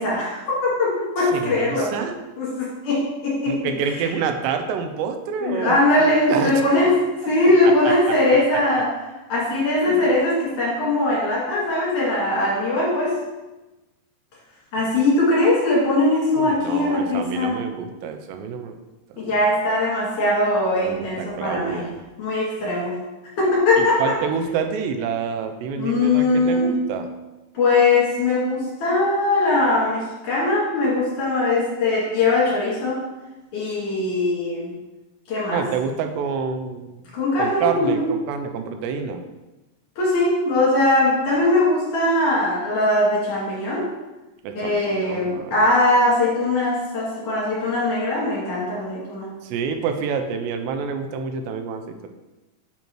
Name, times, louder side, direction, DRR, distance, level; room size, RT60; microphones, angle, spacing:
voice 1, 0.0-1.9 2.4-3.6 3.9-4.1 5.4-7.0 7.3-8.9 9.3-13.2 14.7-17.6 19.2-21.9 22.2-23.0 23.4-24.1 25.8-26.8 27.5-33.0 33.5-34.7 35.3-35.6 37.1-38.1 40.0-43.9 44.5-49.3, left 2 dB, 55° left, -6 dB, 3.2 m, -20 dB
voice 2, 1.3-2.2 3.5-5.8 6.3-6.8 7.6-7.9 9.8-10.0 16.4-18.8 19.2-19.3 20.8-21.9 23.8-27.1 35.5-37.0 37.4-39.2 44.4-45.6 49.4-52.1, right 6 dB, 85° right, 6 dB, 2.8 m, -28 dB
8.2 x 4.5 x 4.5 m, 1.1 s
omnidirectional pair, 4.8 m